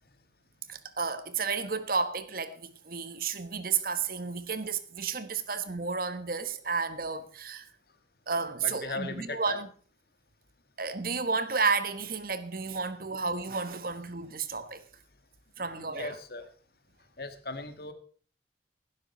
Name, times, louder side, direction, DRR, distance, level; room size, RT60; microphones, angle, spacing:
voice 1, 0.7-7.7 8.3-9.7 10.8-14.8 15.6-16.2, right 5 dB, 55° right, 1.3 m, -32 dB
voice 2, 8.6-9.6 15.6-16.5 17.2-17.9, left 2 dB, 60° left, 1.9 m, -38 dB
16.0 x 12.0 x 4.4 m
head